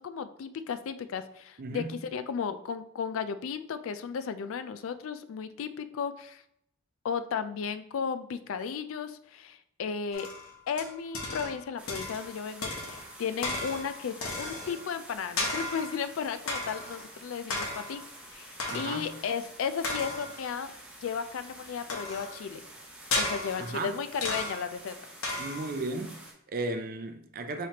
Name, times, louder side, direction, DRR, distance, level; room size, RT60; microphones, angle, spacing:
voice 1, 0.0-6.4 7.0-10.3 10.7-18.0 18.3-20.7 21.0-22.6 23.1-24.9, left 6 dB, 70° left, 0.3 m, -34 dB
voice 2, 1.6-1.9 18.7-19.1 23.6-23.9 25.4-27.7, right 2 dB, 45° right, 0.5 m, -35 dB
sound 1, 10.1-11.6 11.9-12.3 12.6-14.9 15.4-16.0 16.5-17.0 17.5-18.1 18.6-19.2 19.8-20.5 21.9-22.4 23.1-23.8 24.2-24.8 25.2-25.9, left 2 dB, 85° left, 1.0 m, -35 dB
sound 2, 11.8-26.3, right 1 dB, 5° right, 0.9 m, -49 dB
5.7 x 3.2 x 2.8 m
head